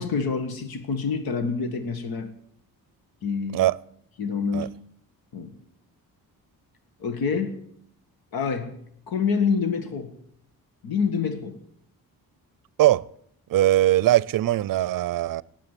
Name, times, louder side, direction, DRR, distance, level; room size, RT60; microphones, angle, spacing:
voice 1, 0.0-2.3 3.2-3.6 4.2-4.7 5.3-5.5 7.0-7.6 8.3-8.8 9.1-10.1 10.8-11.6, left 5 dB, 85° left, 1.7 m, -27 dB
voice 2, 13.5-15.4, right 14 dB, 65° right, 0.5 m, -20 dB
18.5 x 7.4 x 9.8 m
wide cardioid pair, 140°, 35 cm